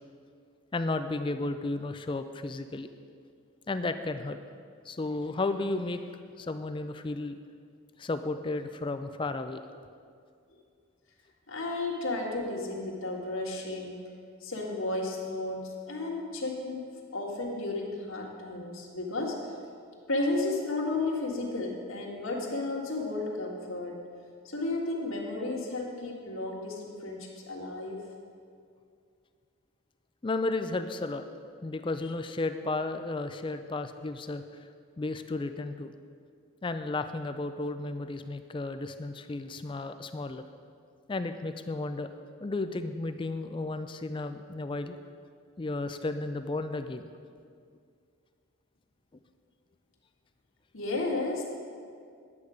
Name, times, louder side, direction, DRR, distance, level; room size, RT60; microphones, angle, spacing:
voice 1, 0.7-2.9 3.7-4.4 4.9-6.1 6.4-7.4 8.0-9.6 30.2-31.2 31.6-34.4 35.0-35.9 36.6-40.4 41.1-42.1 42.4-45.0 45.6-47.1, left 2 dB, 25° left, 9 dB, 0.3 m, -33 dB
voice 2, 11.5-14.0 14.4-19.4 20.1-24.0 24.4-28.0 50.7-51.4, left 2 dB, 75° left, -1 dB, 1.7 m, -33 dB
10.5 x 8.2 x 5.0 m, 2.3 s
head